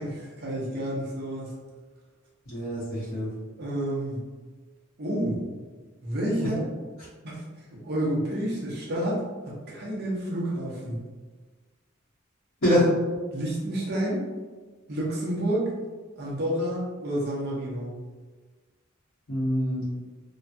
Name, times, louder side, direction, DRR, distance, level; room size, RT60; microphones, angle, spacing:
voice 1, 0.0-1.5 3.6-4.2 5.0-5.4 6.0-6.6 7.2-7.4 7.8-10.9 13.3-14.2 14.9-15.7 16.2-17.9, right 1 dB, 50° right, -5 dB, 0.8 m, -29 dB
voice 2, 2.5-3.3 6.4-6.5 12.6-12.9 19.3-19.8, equal, 70° left, -14 dB, 1.3 m, -24 dB
3.0 x 2.2 x 2.6 m, 1.3 s
head